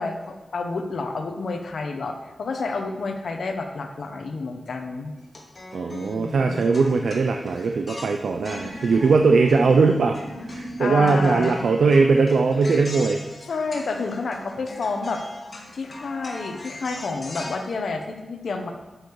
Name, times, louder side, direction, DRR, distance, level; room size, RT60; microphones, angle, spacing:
voice 1, 0.0-5.1 5.9-6.6 10.8-11.6 13.5-15.2 15.7-18.7, left 3 dB, 75° left, 4 dB, 1.2 m, -29 dB
sound 1, 5.2-9.9 10.1-17.5, left 2 dB, 45° left, 2.2 m, -41 dB
voice 2, 5.7-10.2 10.5-13.2, right 4 dB, 80° right, 5 dB, 0.6 m, -20 dB
sound 2, 8.3-13.3, equal, 30° right, 2.2 m, -39 dB
12.0 x 6.7 x 4.9 m, 1.1 s
wide cardioid pair, 125°, 0 cm